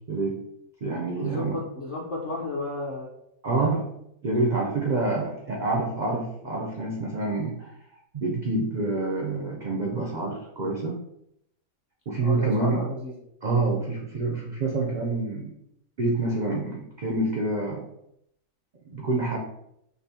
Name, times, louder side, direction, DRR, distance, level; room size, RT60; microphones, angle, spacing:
voice 1, 0.1-0.4 0.8-1.6 3.4-3.9 4.2-7.7 8.1-11.0 12.1-12.8 13.4-15.5 16.0-17.9 18.9-19.4, right 2 dB, 65° right, -2 dB, 0.4 m, -27 dB
voice 2, 1.1-3.1 3.6-3.8 12.2-13.1, left 2 dB, 50° left, -4 dB, 0.7 m, -33 dB
5.3 x 2.0 x 2.7 m, 0.78 s
omnidirectional pair, 1.5 m